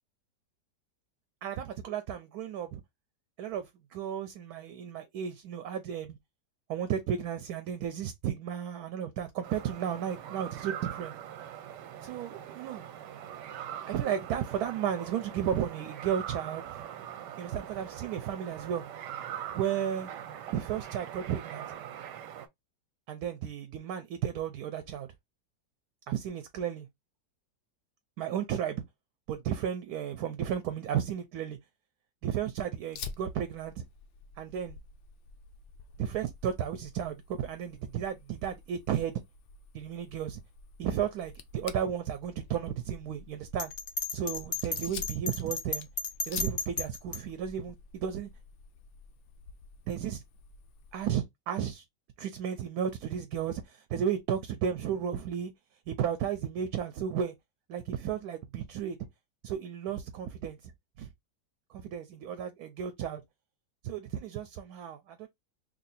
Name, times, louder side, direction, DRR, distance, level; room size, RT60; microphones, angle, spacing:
voice 1, 1.4-2.8 3.4-6.2 6.7-11.1 12.0-12.8 13.9-16.8 17.4-18.8 19.5-20.1 20.5-21.7 23.1-25.1 26.1-26.9 28.2-28.8 29.3-31.6 32.2-33.8 34.4-34.8 36.0-39.2 39.7-40.4 40.8-43.7 44.1-45.9 46.3-48.3 49.9-50.2 50.9-51.8 52.2-55.5 55.9-57.3 57.7-59.0 59.4-60.7 61.0-61.1 61.7-63.2 63.8-65.3, right 9 dB, 70° right, 1.0 m, -33 dB
sound 1, 9.4-22.5, right 10 dB, 90° right, 1.2 m, -42 dB
Fire, 32.9-51.2, left 5 dB, 80° left, 0.6 m, -48 dB
Bell, 43.6-47.2, left 4 dB, 45° left, 0.8 m, -34 dB
2.9 x 2.7 x 4.1 m
omnidirectional pair, 1.8 m